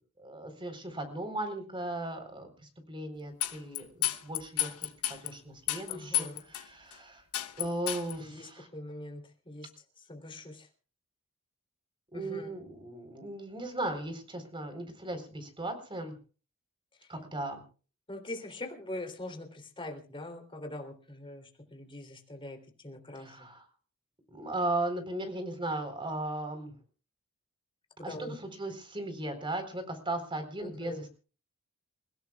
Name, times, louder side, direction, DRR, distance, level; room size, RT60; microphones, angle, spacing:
voice 1, 0.2-7.2 7.6-8.7 12.1-16.2 17.1-17.6 23.1-23.6 24.3-26.7 28.0-31.1, right 2 dB, 25° right, 7 dB, 4.0 m, -37 dB
sound 1, 3.4-5.3 5.7-6.6 6.9-7.0 7.3-8.1, left 12 dB, 85° left, 1.1 m, -31 dB
voice 2, 5.9-6.4 8.2-9.7 10.1-10.7 12.1-12.6 18.1-23.5 28.0-28.4 30.6-31.1, left 1 dB, 25° left, 4 dB, 3.2 m, -43 dB
29.0 x 16.5 x 2.4 m, 0.37 s
head